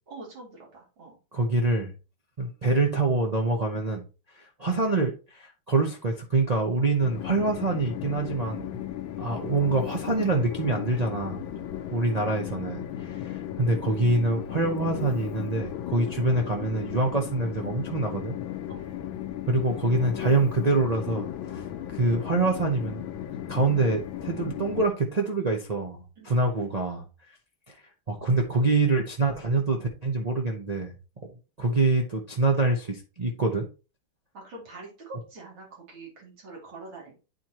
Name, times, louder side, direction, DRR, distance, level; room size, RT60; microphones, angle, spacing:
voice 1, 0.1-1.1 11.7-11.9 18.7-18.9 26.2-26.4 34.3-37.2, right 3 dB, 85° right, -2 dB, 3.5 m, -44 dB
voice 2, 1.3-1.9 2.4-4.0 4.4-8.7 9.2-11.4 11.9-18.3 19.5-21.6 21.9-23.0 23.5-27.0 27.7-27.8 28.1-30.9 31.6-33.7, right 3 dB, 70° right, 0 dB, 0.3 m, -25 dB
Train, 7.0-24.9, left 11 dB, 80° left, 1.5 m, -35 dB
9.2 x 4.4 x 2.9 m, 0.31 s
omnidirectional pair, 2.1 m